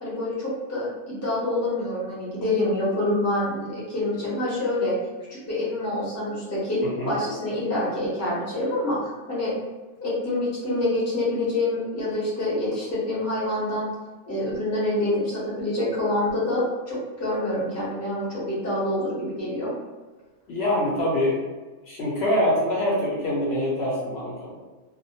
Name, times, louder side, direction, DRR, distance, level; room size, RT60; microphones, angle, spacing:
voice 1, 0.0-4.9 5.3-9.5 10.0-13.9 14.2-19.7, left 1 dB, 15° left, -7 dB, 0.6 m, -26 dB
voice 2, 6.8-7.1 20.5-21.5 21.9-24.5, left 1 dB, 65° left, -5 dB, 0.8 m, -24 dB
2.1 x 2.1 x 2.8 m, 1.3 s
omnidirectional pair, 1.3 m